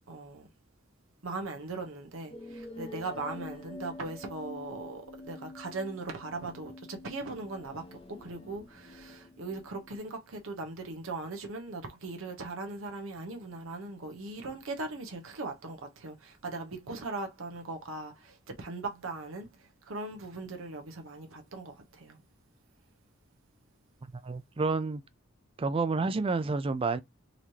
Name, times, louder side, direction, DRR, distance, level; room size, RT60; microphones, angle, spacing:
voice 1, 0.1-0.5 1.2-22.2, right 3 dB, 75° right, 0.9 m, -39 dB
sound 1, 2.3-10.0, left 2 dB, 25° left, 0.9 m, -47 dB
voice 2, 24.2-25.0 25.6-27.0, right 3 dB, 25° right, 0.4 m, -29 dB
4.0 x 3.1 x 2.8 m
head